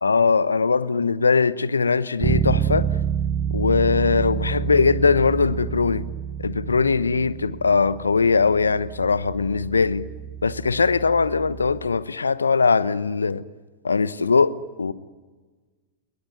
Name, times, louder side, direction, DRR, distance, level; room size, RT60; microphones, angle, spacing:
voice 1, 0.0-2.9 3.5-6.0 6.4-10.1 10.4-13.4 13.8-14.9, left 4 dB, 80° left, 1.0 m, -20 dB
Bass guitar, 2.2-12.0, right 8 dB, 35° right, 1.3 m, -28 dB
29.0 x 21.5 x 9.0 m
figure-of-eight pair, 95°, 0 cm